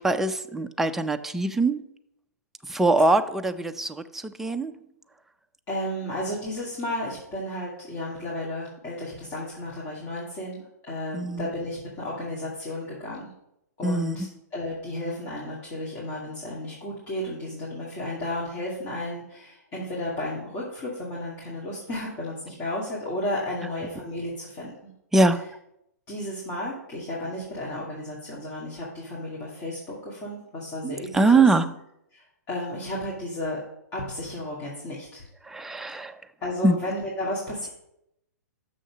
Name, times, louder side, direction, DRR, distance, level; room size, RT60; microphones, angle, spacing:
voice 1, 0.0-1.8 2.7-4.8 11.1-11.5 13.8-14.2 25.1-25.4 30.8-31.7 35.5-36.2 36.6-36.8, right 2 dB, 5° right, 6 dB, 0.4 m, -23 dB
voice 2, 5.7-13.3 13.8-24.7 26.1-31.5 32.1-33.6 33.9-35.2 36.4-37.7, left 1 dB, 30° left, -5 dB, 2.3 m, -33 dB
6.5 x 6.4 x 6.1 m, 0.80 s
figure-of-eight pair, 120°, 9 cm